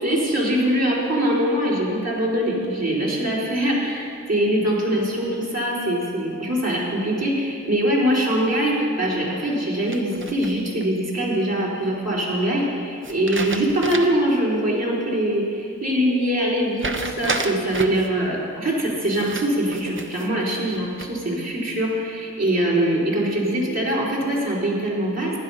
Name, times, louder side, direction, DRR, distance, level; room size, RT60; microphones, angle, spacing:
voice 1, 0.0-25.4, right 1 dB, 60° right, -6 dB, 4.2 m, -23 dB
sound 1, 9.9-10.8 13.0-14.3 14.7-14.8 16.8-18.1 19.1-20.3 20.7-21.3, right 3 dB, 40° right, 1.1 m, -31 dB
16.0 x 10.5 x 5.7 m, 2.5 s
cardioid pair, 50°, 30 cm